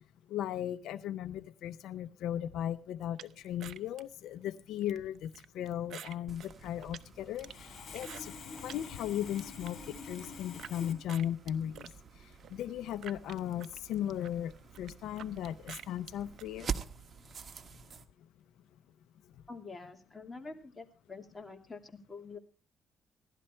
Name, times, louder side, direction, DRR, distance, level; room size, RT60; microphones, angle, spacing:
voice 1, 0.3-5.3 5.5-8.3 8.6-9.8 10.1-11.8 12.5-14.5 14.8-16.7, left 11 dB, 85° left, 14 dB, 0.6 m, -36 dB
sound 1, 3.2-8.8 9.2-10.7 11.1-16.5, right 10 dB, 70° right, 0.7 m, -51 dB
sound 2, 6.3-18.1, right 6 dB, 45° right, 1.4 m, -47 dB
Sawing, 7.4-10.9, left 5 dB, 60° left, 3.1 m, -46 dB
voice 2, 19.5-22.4, left 4 dB, 20° left, 3 dB, 2.8 m, -46 dB
16.5 x 12.0 x 4.4 m, 0.35 s
cardioid pair, 90°, 0 cm